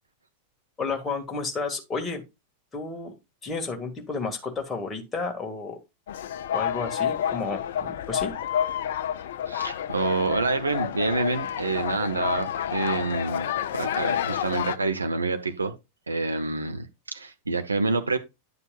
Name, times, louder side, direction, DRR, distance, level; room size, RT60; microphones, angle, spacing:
voice 1, 0.8-2.2 2.7-3.1 3.4-5.8 6.5-8.3, left 4 dB, 15° left, 2.0 m, -31 dB
sound 1, 6.1-14.8, left 9 dB, 55° left, 0.5 m, -29 dB
voice 2, 9.5-13.5 13.7-15.7 16.1-18.2, right 3 dB, 80° right, 0.9 m, -27 dB
9.8 x 6.8 x 2.4 m
figure-of-eight pair, 90°, 0 cm